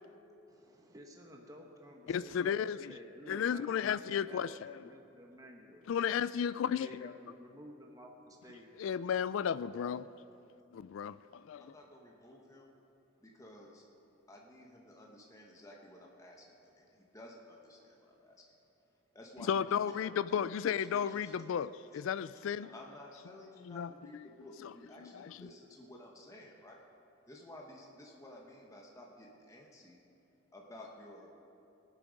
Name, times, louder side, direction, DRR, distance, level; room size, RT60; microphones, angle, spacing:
voice 1, 0.5-5.9 6.6-8.8, equal, 15° right, 1 dB, 0.9 m, -53 dB
voice 2, 2.1-3.0 3.3-4.8 5.9-7.1 8.8-10.0 10.7-11.6 19.5-22.7 23.6-24.2 24.6-24.7 25.0-25.4, left 8 dB, 70° left, 17 dB, 0.3 m, -34 dB
voice 3, 11.6-12.7 13.2-13.8 14.3-18.4 19.1-20.5 20.8-21.3 22.7-26.8 27.3-30.0 30.5-31.3, left 1 dB, 15° left, -1 dB, 1.0 m, -53 dB
18.5 x 8.3 x 5.2 m, 2.8 s
head